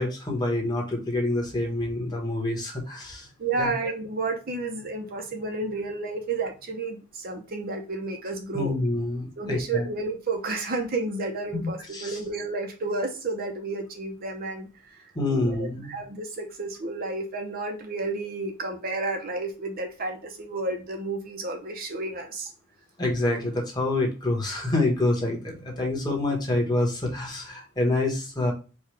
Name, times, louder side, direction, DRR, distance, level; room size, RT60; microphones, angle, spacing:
voice 1, 0.0-3.3 3.6-3.7 8.5-9.9 11.5-11.7 11.9-12.2 15.1-16.0 23.0-28.5, left 2 dB, 20° left, 0 dB, 1.2 m, -27 dB
voice 2, 3.4-8.7 9.4-14.7 14.9-15.0 15.3-22.5, right 3 dB, 45° right, 3 dB, 0.7 m, -31 dB
4.7 x 2.3 x 4.6 m, 0.33 s
head